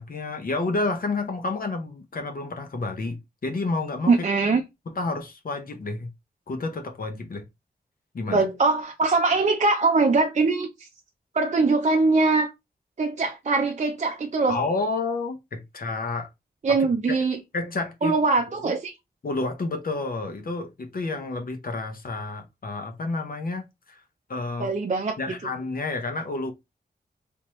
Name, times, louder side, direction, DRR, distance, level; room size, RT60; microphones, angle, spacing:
voice 1, 0.0-4.3 4.9-6.1 6.5-7.5 8.1-8.4 14.5-16.3 16.7-16.8 17.2-17.3 17.5-18.2 18.6-18.7 19.2-24.0 24.3-24.7 25.2-26.5, left 3 dB, 60° left, 0.8 m, -30 dB
voice 2, 4.1-4.6 8.3-10.9 11.3-12.5 13.0-14.6 16.6-17.4 18.0-18.9 24.6-25.2, right 3 dB, 45° right, 0.5 m, -22 dB
3.5 x 2.9 x 3.0 m
wide cardioid pair, 115°, 17 cm